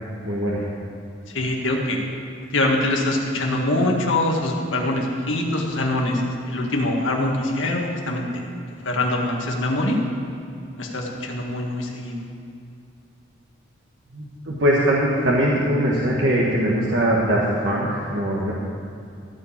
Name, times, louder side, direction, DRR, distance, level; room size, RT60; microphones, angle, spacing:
voice 1, 0.2-0.7 14.1-18.5, right 1 dB, 65° right, -5 dB, 1.4 m, -21 dB
voice 2, 1.3-2.0 2.5-6.2 6.5-8.4 8.8-10.0 10.8-12.2, left 1 dB, 80° left, 0 dB, 1.8 m, -23 dB
15.0 x 5.2 x 8.6 m, 2.5 s
head